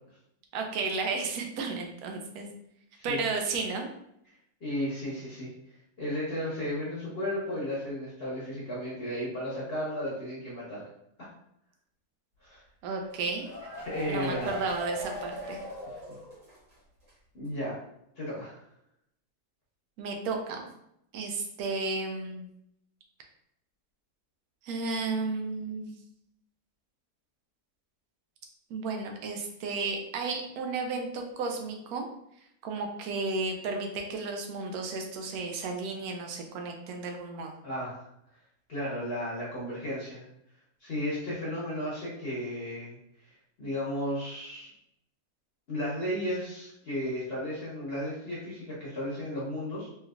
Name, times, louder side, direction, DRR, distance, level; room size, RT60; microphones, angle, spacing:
voice 1, 0.5-2.5 3.0-3.9 12.8-13.5 14.1-15.6 20.0-20.7 21.1-22.5 24.6-26.0 28.7-32.1 32.6-37.5, right 3 dB, 75° right, 3 dB, 1.1 m, -33 dB
voice 2, 4.6-5.5 6.0-10.9 11.2-11.3 12.4-12.6 13.8-14.5 17.3-17.8 18.2-18.6 37.6-38.1 38.7-40.2 40.8-43.0 43.6-44.7 45.7-49.9, equal, 45° left, -7 dB, 1.1 m, -34 dB
sound 1, 13.1-16.7 17.0-17.1 17.4-17.5, left 1 dB, 55° right, 1.5 m, -40 dB
3.2 x 3.1 x 2.3 m, 0.78 s
omnidirectional pair, 1.6 m